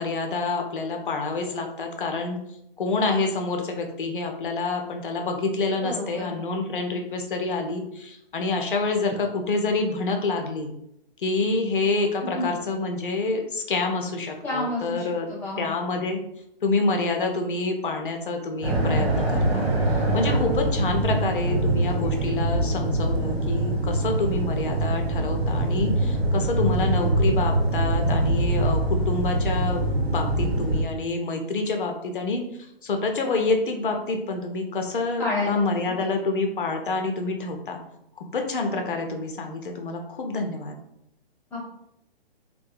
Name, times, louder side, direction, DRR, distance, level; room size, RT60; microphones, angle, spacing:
voice 1, 0.0-2.4 2.8-10.7 11.2-15.3 15.6-16.2 16.6-19.7 20.0-37.8 38.2-40.8, left 3 dB, 60° left, 3 dB, 0.6 m, -27 dB
voice 2, 5.8-6.4 12.3-12.5 14.4-15.7 35.2-35.6 36.0-36.1 41.5-41.6, left 2 dB, 5° left, -8 dB, 0.6 m, -29 dB
sound 1, 18.6-30.8, right 1 dB, 80° right, 0.8 m, -24 dB
2.6 x 2.1 x 2.3 m, 0.78 s
figure-of-eight pair, 125°, 30 cm